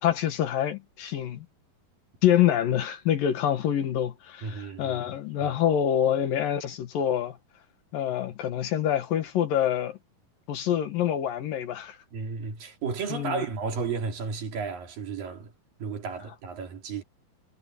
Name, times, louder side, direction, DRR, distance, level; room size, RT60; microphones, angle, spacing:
voice 1, 0.0-1.5 2.2-7.4 7.9-10.0 10.5-12.0 13.1-13.4, left 10 dB, 65° left, 3.1 m, -26 dB
voice 2, 4.4-5.0 5.4-5.6 12.1-15.5 15.8-17.0, right 5 dB, 65° right, 4.7 m, -33 dB
omnidirectional pair, 4.4 m